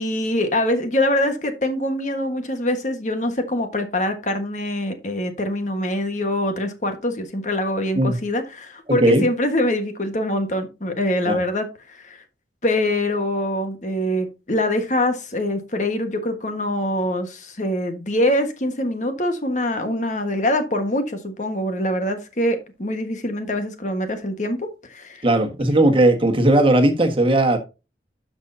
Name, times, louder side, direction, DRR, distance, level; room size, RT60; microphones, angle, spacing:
voice 1, 0.0-12.2 12.6-25.2, left 1 dB, 45° left, 1.4 m, -24 dB
voice 2, 25.2-27.6, right 1 dB, 30° right, 1.5 m, -17 dB
12.0 x 6.3 x 2.7 m
head